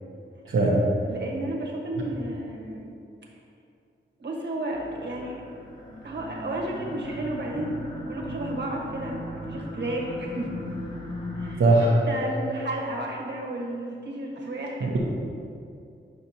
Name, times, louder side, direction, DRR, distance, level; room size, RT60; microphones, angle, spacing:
voice 1, 0.4-0.9 11.6-12.0 14.8-15.0, right 2 dB, 85° right, -8 dB, 1.1 m, -20 dB
voice 2, 1.0-2.9 4.2-5.4 6.0-7.8 8.1-10.9 11.4-11.6 12.1-15.0, right 1 dB, 60° right, -2 dB, 1.4 m, -32 dB
sound 1, 4.7-11.6, equal, 20° left, 1.1 m, -37 dB
9.5 x 5.8 x 2.9 m, 2.5 s
wide cardioid pair, 75°, 20 cm